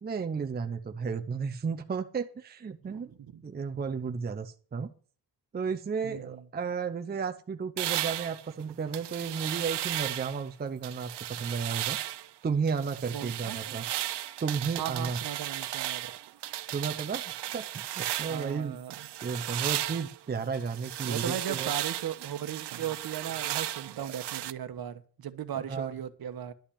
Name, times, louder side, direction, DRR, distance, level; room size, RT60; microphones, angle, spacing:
voice 1, 0.0-3.1 3.4-4.9 5.5-12.0 12.4-13.8 14.4-15.2 16.7-18.8 19.2-21.7 24.0-24.1 25.5-25.9, right 5 dB, 25° right, 0.6 m, -33 dB
voice 2, 2.8-3.4 6.0-6.4 13.1-13.6 14.8-16.1 18.3-19.1 21.1-26.5, right 9 dB, 60° right, 1.2 m, -37 dB
sound 1, 7.8-10.4 10.8-12.3 12.7-18.6 18.9-24.5, right 13 dB, 75° right, 0.7 m, -35 dB
11.5 x 5.8 x 8.5 m
wide cardioid pair, 175°, 41 cm